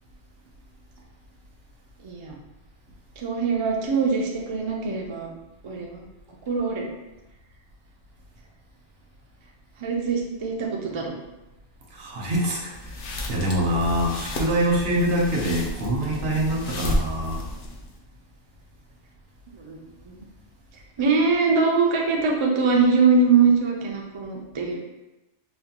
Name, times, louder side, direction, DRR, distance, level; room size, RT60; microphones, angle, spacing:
voice 1, 2.0-2.3 3.2-5.3 5.6-6.1 6.5-6.9 9.8-11.1 19.5-19.8 20.1-20.2 21.0-24.8, right 4 dB, 50° right, 0 dB, 0.3 m, -22 dB
voice 2, 11.9-12.9 13.3-17.4, right 1 dB, 65° right, -2 dB, 0.9 m, -25 dB
sound 1, 12.7-18.0, left 1 dB, 65° left, 0.7 m, -32 dB
4.2 x 2.1 x 2.8 m, 0.99 s
omnidirectional pair, 1.1 m